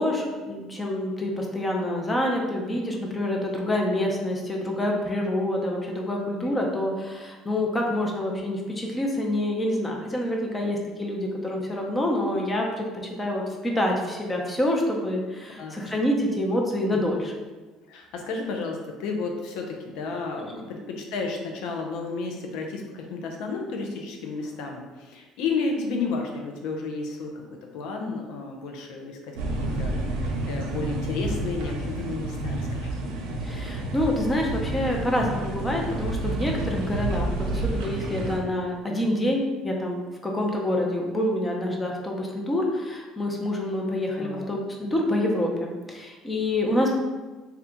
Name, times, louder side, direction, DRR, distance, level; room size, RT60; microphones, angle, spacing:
voice 1, 0.0-12.9 13.2-17.3 20.5-20.7 33.4-46.9, left 1 dB, 20° left, 0 dB, 0.7 m, -27 dB
voice 2, 17.9-27.4 27.7-33.0 44.2-44.5, left 4 dB, 75° left, 2 dB, 0.6 m, -32 dB
sound 1, 29.4-38.4, right 2 dB, 90° right, 0.5 m, -30 dB
2.8 x 2.3 x 3.5 m, 1.3 s
supercardioid pair, 95°, 0 cm